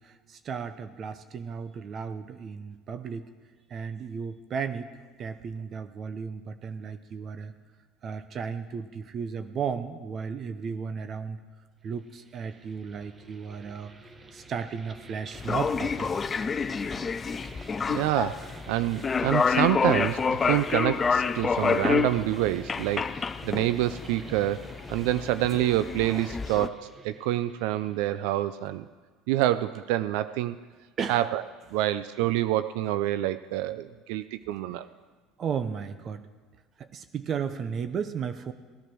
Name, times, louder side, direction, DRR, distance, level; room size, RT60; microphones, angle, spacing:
voice 1, 0.0-3.2 3.7-4.9 5.2-7.5 8.0-11.4 11.8-13.9 14.3-16.4 31.0-31.2 34.7-34.8 35.4-36.3 36.8-38.5, right 6 dB, 45° right, 10 dB, 0.8 m, -34 dB
sound 1, 11.9-28.6, right 2 dB, 25° right, 1.4 m, -49 dB
sound 2, 15.3-26.7, left 5 dB, 25° left, 0.6 m, -28 dB
voice 2, 17.9-24.6 24.9-28.9 29.3-30.6 31.1-31.4 31.7-34.9, right 14 dB, 75° right, 13 dB, 0.4 m, -27 dB
17.0 x 10.0 x 6.1 m, 1.4 s
supercardioid pair, 95°, 0 cm